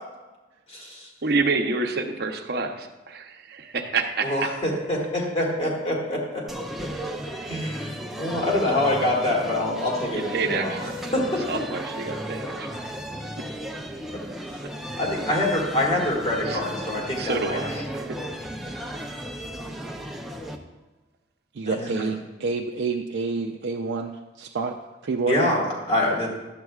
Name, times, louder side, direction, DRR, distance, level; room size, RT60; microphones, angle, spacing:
voice 1, 0.7-1.1 4.2-6.4 7.5-11.4 12.4-12.6 14.1-14.2 15.0-17.8 21.7-22.1 25.3-26.3, left 1 dB, 35° left, -3 dB, 1.9 m, -26 dB
voice 2, 1.2-4.5 10.1-12.8 14.3-14.7 16.5-16.6 17.2-18.2 18.7-19.1, right 3 dB, 60° right, 4 dB, 0.8 m, -29 dB
sound 1, 6.5-20.6, equal, ahead, 0.5 m, -35 dB
voice 3, 21.5-25.5, right 4 dB, 80° right, 1 dB, 0.4 m, -28 dB
12.0 x 7.7 x 2.4 m, 1.1 s
head